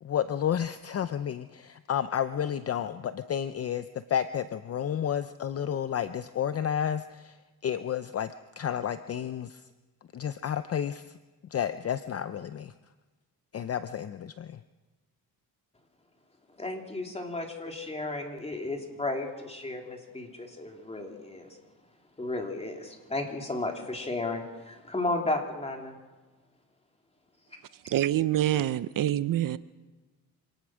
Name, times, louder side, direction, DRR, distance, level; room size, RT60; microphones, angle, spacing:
voice 1, 0.0-7.4 7.6-9.7 10.1-11.2 11.5-12.7 13.5-14.6, left 9 dB, 40° left, 12 dB, 0.6 m, -31 dB
voice 2, 16.6-21.6 22.2-26.0, left 2 dB, 15° left, 2 dB, 3.1 m, -34 dB
voice 3, 27.8-29.6, right 12 dB, 60° right, 15 dB, 0.6 m, -26 dB
26.0 x 18.5 x 6.3 m, 1.3 s
cardioid pair, 135°, 38 cm